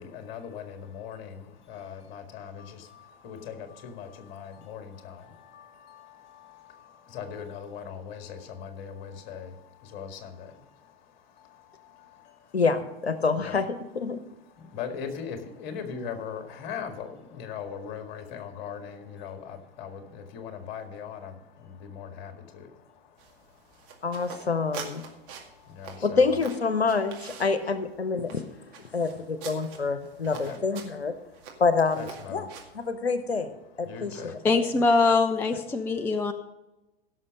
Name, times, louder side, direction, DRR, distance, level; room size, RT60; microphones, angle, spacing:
voice 1, 0.0-12.6 13.3-13.6 14.1-24.3 25.0-26.4 28.2-28.4 28.8-29.0 29.6-29.7 30.0-30.6 31.4-31.6 32.0-32.5 32.9-33.1 33.8-34.5 35.8-36.3, left 7 dB, 40° left, 6 dB, 2.0 m, -41 dB
voice 2, 12.5-14.2 24.0-25.0 26.0-28.4 28.8-31.1 31.6-32.5 32.7-34.2, left 4 dB, 80° left, 12 dB, 0.9 m, -27 dB
sound 1, 23.2-32.9, right 6 dB, 40° right, 2.1 m, -45 dB
voice 3, 34.4-36.3, left 3 dB, 5° left, 8 dB, 0.4 m, -23 dB
16.0 x 6.4 x 5.4 m, 0.99 s
figure-of-eight pair, 95°, 31 cm